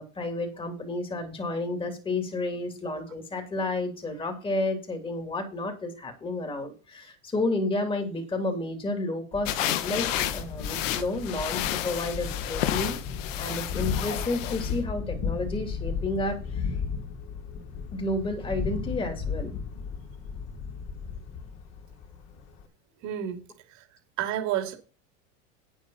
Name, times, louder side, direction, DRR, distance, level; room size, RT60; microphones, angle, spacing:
voice 1, 0.0-13.0 13.4-16.6 17.9-19.6, left 2 dB, 15° left, 2.9 m, -31 dB
Thunder, 9.3-22.6, left 5 dB, 40° left, 3.0 m, -35 dB
sound 1, 9.4-14.8, left 12 dB, 75° left, 1.4 m, -31 dB
voice 2, 23.0-23.4 23.8-23.9 24.2-24.7, right 11 dB, 45° right, 3.0 m, -29 dB
9.1 x 8.0 x 5.8 m
supercardioid pair, 130°, 39 cm